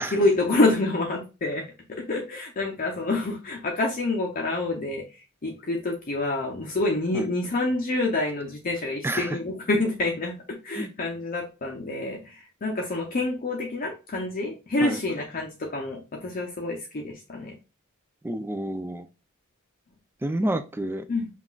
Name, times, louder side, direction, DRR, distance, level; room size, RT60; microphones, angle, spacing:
voice 1, 0.1-17.5 21.1-21.3, left 2 dB, 40° left, 0 dB, 0.6 m, -27 dB
voice 2, 9.0-9.4 10.8-10.9 14.8-15.0 18.2-19.1 20.2-21.0, right 1 dB, 10° right, 9 dB, 0.4 m, -29 dB
5.7 x 2.5 x 2.3 m, 0.30 s
head